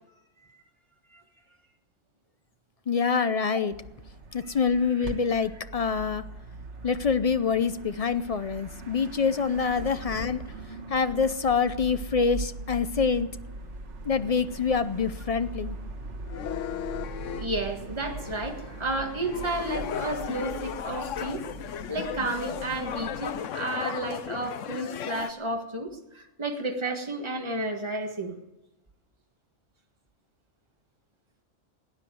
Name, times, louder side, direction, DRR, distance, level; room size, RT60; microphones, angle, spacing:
voice 1, 2.9-3.8 4.3-6.3 6.8-10.4 10.9-13.4 14.0-15.8, left 5 dB, 45° left, 12 dB, 0.5 m, -26 dB
sound 1, 3.7-23.4, right 2 dB, 70° right, 1.7 m, -41 dB
sound 2, 16.2-17.5 18.1-25.3, left 9 dB, 80° left, 1.1 m, -36 dB
voice 2, 17.4-21.5 21.9-28.4, right 2 dB, 25° right, 3 dB, 1.7 m, -32 dB
18.0 x 9.8 x 7.7 m, 0.97 s
omnidirectional pair, 1.3 m